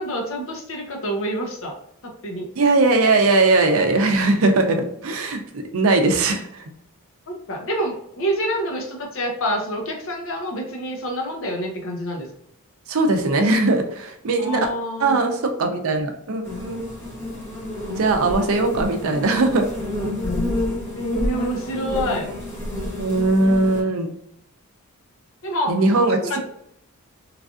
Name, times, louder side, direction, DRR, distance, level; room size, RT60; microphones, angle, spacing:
voice 1, 0.0-1.8 2.0-2.5 7.3-12.3 14.4-15.2 18.4-18.7 20.9-22.3 25.4-25.8 26.2-26.4, equal, 60° left, 1 dB, 0.7 m, -27 dB
voice 2, 2.6-6.6 12.9-14.6 15.0-16.9 18.0-19.7 22.7-24.1 25.7-26.4, right 2 dB, 65° right, 4 dB, 0.5 m, -20 dB
sound 1, 16.4-23.8, left 1 dB, 10° left, 0.8 m, -29 dB
3.2 x 2.5 x 2.4 m, 0.74 s
head